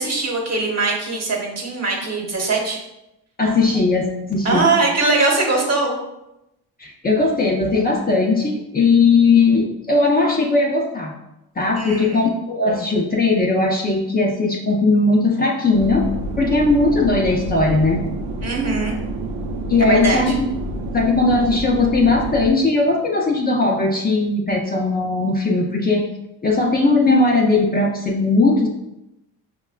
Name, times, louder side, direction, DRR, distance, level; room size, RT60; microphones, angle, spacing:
voice 1, 0.0-2.8 4.4-6.0 11.7-12.3 18.4-19.0 19.8-20.3, right 3 dB, 40° right, 0 dB, 1.1 m, -21 dB
voice 2, 3.4-4.6 6.8-11.1 11.6-16.1 16.4-18.0 19.7-20.5 20.9-26.1 26.4-28.7, left 3 dB, 25° left, -1 dB, 0.5 m, -18 dB
sound 1, 15.7-22.5, right 1 dB, 90° right, 0.5 m, -28 dB
5.2 x 2.2 x 2.3 m, 0.88 s
cardioid pair, 75°, 39 cm